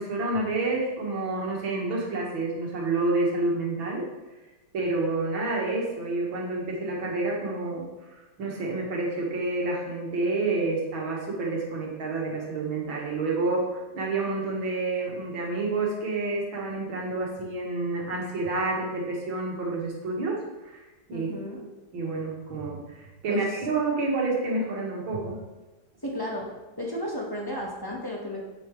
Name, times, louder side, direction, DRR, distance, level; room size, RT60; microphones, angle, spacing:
voice 1, 0.0-4.0 4.7-21.3 21.9-25.4, right 3 dB, 80° right, -2 dB, 2.6 m, -29 dB
voice 2, 21.1-21.6 23.3-23.4 26.0-26.5 26.8-28.4, left 1 dB, 10° left, -2 dB, 1.4 m, -33 dB
8.6 x 8.2 x 3.3 m, 1.1 s
omnidirectional pair, 2.2 m